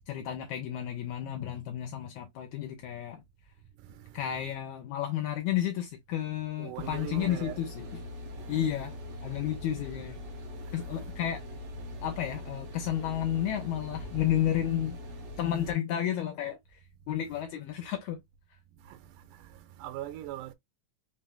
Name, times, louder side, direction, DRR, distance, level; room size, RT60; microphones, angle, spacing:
voice 1, 0.1-3.2 4.1-7.9 8.5-8.9 9.2-10.2 10.7-11.4 12.0-15.0 15.4-16.8 17.1-18.2, left 11 dB, 80° left, 2.0 m, -32 dB
voice 2, 3.8-4.6 6.6-7.6 8.4-8.9 10.6-11.1 12.0-12.1 18.8-20.5, right 13 dB, 90° right, 2.2 m, -43 dB
sound 1, 6.8-15.7, left 1 dB, 65° right, 1.8 m, -42 dB
5.4 x 3.1 x 2.2 m
omnidirectional pair, 3.7 m